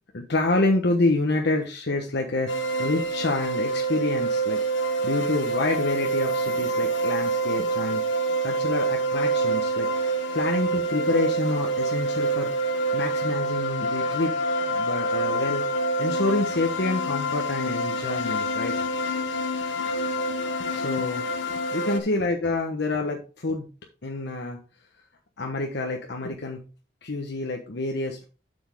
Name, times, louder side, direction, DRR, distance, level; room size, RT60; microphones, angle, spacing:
voice 1, 0.1-4.6 5.0-8.0 8.4-9.9 10.3-12.5 12.9-14.3 14.7-15.6 16.0-18.7 20.7-21.2 21.7-23.7 24.0-24.6 25.4-26.6 27.0-28.3, left 2 dB, 65° left, 2 dB, 1.1 m, -27 dB
sound 1, 2.5-22.0, right 2 dB, 80° left, 1.1 m, -26 dB
7.6 x 7.0 x 3.5 m, 0.34 s
head